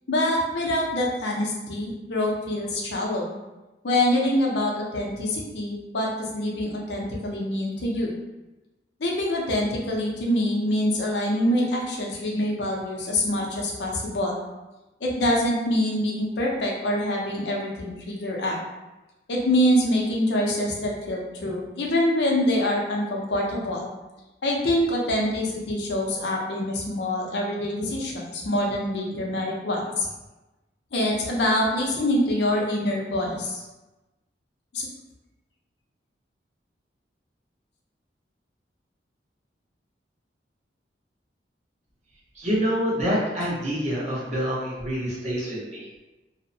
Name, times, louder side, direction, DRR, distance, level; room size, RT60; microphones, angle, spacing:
voice 1, 0.1-3.4 3.8-8.1 9.0-14.4 15.0-18.6 19.3-23.9 24.4-30.1 30.9-33.6 34.7-34.9, left 1 dB, 70° left, -1 dB, 0.6 m, -25 dB
voice 2, 42.3-45.9, equal, 40° right, -7 dB, 0.8 m, -26 dB
2.6 x 2.1 x 2.6 m, 1.0 s
head